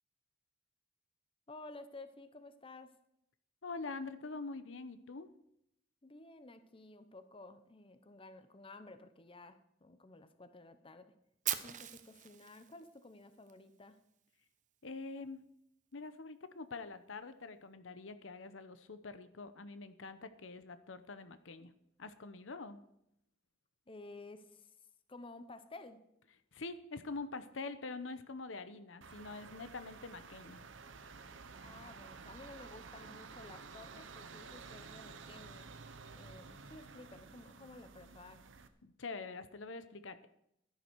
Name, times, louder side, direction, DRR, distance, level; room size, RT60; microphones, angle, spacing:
voice 1, 1.5-2.9 6.0-11.1 11.6-14.0 23.9-24.7 25.1-26.0 31.6-35.7 36.1-38.4, left 2 dB, 30° left, 11 dB, 0.9 m, -53 dB
voice 2, 3.6-5.3 14.8-15.5 15.9-21.7 22.0-22.8 26.5-30.6 38.8-40.3, left 3 dB, 85° left, 12 dB, 0.9 m, -45 dB
Fire, 11.4-13.5, right 11 dB, 40° right, 0.9 m, -40 dB
sound 1, 29.0-38.7, right 4 dB, 90° right, 1.0 m, -52 dB
12.5 x 11.0 x 4.7 m, 0.77 s
head